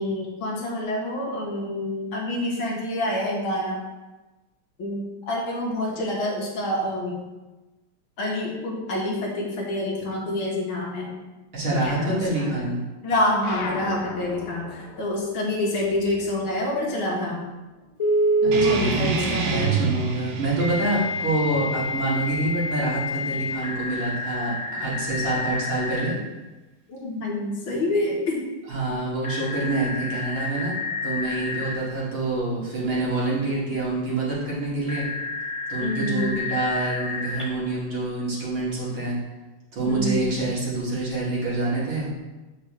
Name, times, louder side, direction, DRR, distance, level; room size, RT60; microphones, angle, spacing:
voice 1, 0.0-3.8 4.8-7.2 8.2-11.1 11.8-12.7 13.0-17.4 18.4-19.7 26.9-28.5 35.8-36.4 39.9-40.3, left 1 dB, 70° left, -2 dB, 2.1 m, -27 dB
voice 2, 11.5-12.8 18.4-26.1 28.6-30.7 31.0-35.1 35.7-39.2 39.7-42.1, right 2 dB, 60° right, -7 dB, 2.9 m, -26 dB
sound 1, 13.4-18.3 18.6-20.0, left 4 dB, 85° left, 1.7 m, -40 dB
Telephone, 18.0-18.7 20.6-26.1 29.2-31.8 34.9-37.4, equal, 35° left, 0.4 m, -28 dB
sound 2, 18.5-23.6, right 4 dB, 85° right, 1.7 m, -29 dB
8.2 x 5.9 x 3.3 m, 1.1 s
omnidirectional pair, 2.4 m